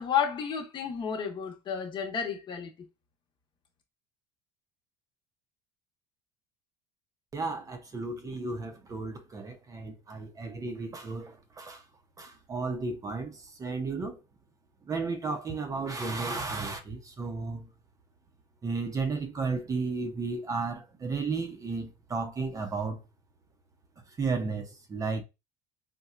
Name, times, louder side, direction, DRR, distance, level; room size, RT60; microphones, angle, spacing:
voice 1, 0.0-2.7, left 7 dB, 40° left, 1.0 m, -31 dB
voice 2, 7.3-11.8 12.2-14.2 14.9-17.7 18.6-23.0 24.2-25.2, right 4 dB, 25° right, 0.7 m, -33 dB
4.2 x 2.2 x 2.4 m
supercardioid pair, 95°, 13 cm